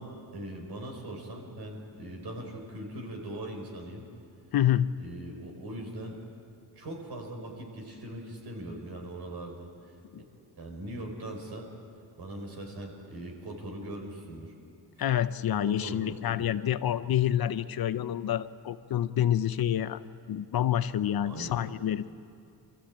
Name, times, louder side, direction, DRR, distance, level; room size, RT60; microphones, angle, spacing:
voice 1, 0.0-4.1 5.0-6.2 6.7-10.0 10.6-11.7 12.2-14.5 15.6-16.7 21.2-21.6, right 1 dB, 60° right, 2 dB, 4.8 m, -41 dB
voice 2, 4.5-4.9 10.1-10.2 15.0-20.0 20.3-22.1, left 11 dB, 55° left, 13 dB, 0.7 m, -28 dB
23.5 x 15.0 x 8.6 m, 2.4 s
cardioid pair, 90°, 43 cm